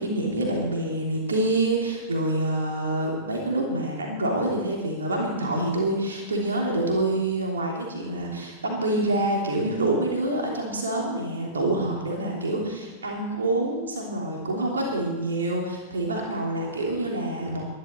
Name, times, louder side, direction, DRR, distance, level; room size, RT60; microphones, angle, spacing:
voice 1, 0.0-17.6, right 1 dB, 70° right, -1 dB, 3.2 m, -26 dB
22.5 x 11.5 x 4.5 m, 1.3 s
figure-of-eight pair, 90°, 0 cm